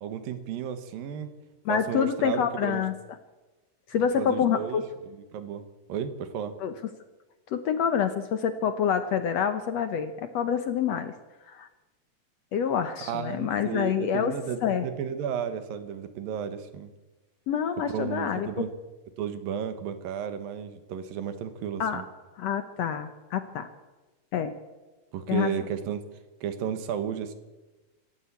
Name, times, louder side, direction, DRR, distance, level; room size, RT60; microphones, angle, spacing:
voice 1, 0.0-1.3 1.7-2.8 4.2-6.6 13.0-16.9 17.9-18.7 19.2-22.0 25.1-26.0 26.4-27.3, right 8 dB, 85° right, 10 dB, 3.2 m, -33 dB
voice 2, 1.7-2.9 3.9-4.8 6.6-6.7 7.5-11.1 11.5-11.7 12.5-14.3 14.6-14.9 17.5-18.5 21.8-22.0 22.4-23.7 24.3-24.5 25.3-25.5, left 8 dB, 65° left, 9 dB, 1.7 m, -27 dB
25.5 x 13.5 x 8.3 m, 1.2 s
omnidirectional pair, 4.0 m